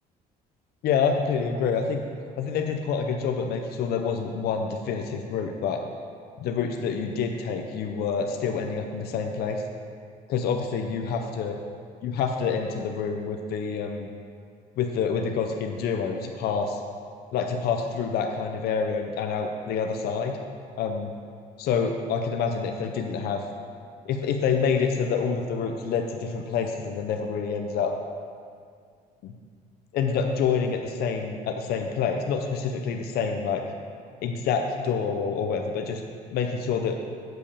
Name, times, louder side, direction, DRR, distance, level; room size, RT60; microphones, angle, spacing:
voice 1, 0.8-2.0 2.4-5.8 6.4-9.6 10.3-11.6 12.0-14.1 14.8-16.8 17.3-20.4 20.8-21.1 21.6-23.4 24.1-27.9 29.2-29.3 29.9-33.6 34.2-36.0 36.3-37.0, left 6 dB, 70° left, 4 dB, 0.6 m, -27 dB
7.7 x 5.3 x 6.7 m, 2.2 s
cardioid pair, 110°, 17 cm